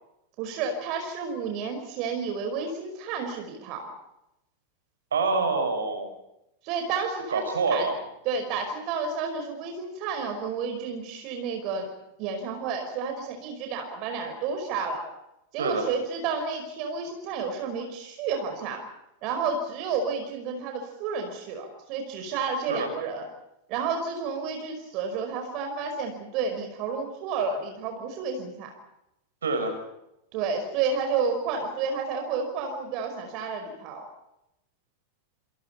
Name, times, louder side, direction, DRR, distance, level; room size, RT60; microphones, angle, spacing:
voice 1, 0.4-3.9 6.6-7.4 7.7-7.9 8.2-11.9 12.2-15.0 15.5-18.8 19.2-23.3 23.7-28.7 30.3-34.1, right 5 dB, 40° right, 5 dB, 5.1 m, -31 dB
voice 2, 5.1-6.1 7.3-8.0 15.6-15.9 22.7-22.9 29.4-29.8, right 3 dB, 70° right, 6 dB, 6.2 m, -26 dB
29.0 x 28.0 x 4.5 m, 0.86 s
figure-of-eight pair, 90°, 0 cm